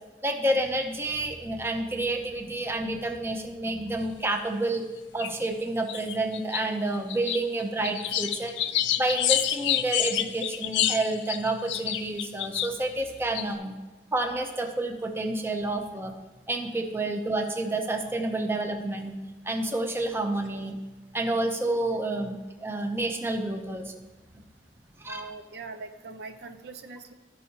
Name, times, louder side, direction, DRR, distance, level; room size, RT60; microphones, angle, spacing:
voice 1, 0.2-4.8 5.1-8.5 9.0-13.8 14.1-16.1 16.5-19.2 19.4-20.8 21.1-23.9 25.0-25.3, right 2 dB, 15° right, 3 dB, 0.6 m, -29 dB
sound 1, 4.2-4.3 5.2-5.5 5.9-6.6 6.9-12.7 13.3-13.4, left 11 dB, 85° left, 0.4 m, -28 dB
voice 2, 25.1-27.1, right 4 dB, 70° right, 7 dB, 0.5 m, -42 dB
13.5 x 5.4 x 2.8 m, 1.2 s
head